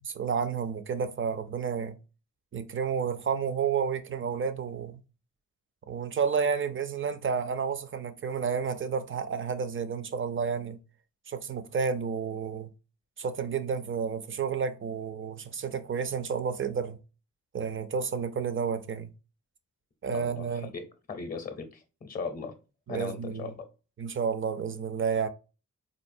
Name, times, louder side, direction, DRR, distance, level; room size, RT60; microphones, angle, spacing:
voice 1, 0.0-2.0 2.5-5.0 5.9-10.8 11.3-12.7 13.2-17.0 17.5-19.1 20.0-20.7 22.9-23.5 24.0-25.3, right 6 dB, 40° right, 0.4 m, -31 dB
voice 2, 20.1-20.8 21.1-22.5 22.9-23.6, left 4 dB, 25° left, 0.6 m, -38 dB
4.4 x 2.6 x 2.5 m
wide cardioid pair, 140°, 32 cm